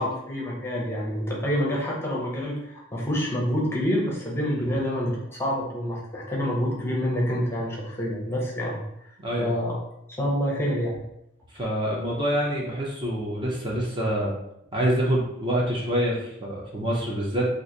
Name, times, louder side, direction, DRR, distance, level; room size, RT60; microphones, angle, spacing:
voice 1, 0.0-9.8 10.2-11.0, equal, 10° left, -3 dB, 0.7 m, -27 dB
voice 2, 9.2-9.5 11.5-14.3 14.7-17.5, equal, 25° right, -3 dB, 0.7 m, -26 dB
3.0 x 2.5 x 3.8 m, 0.80 s
head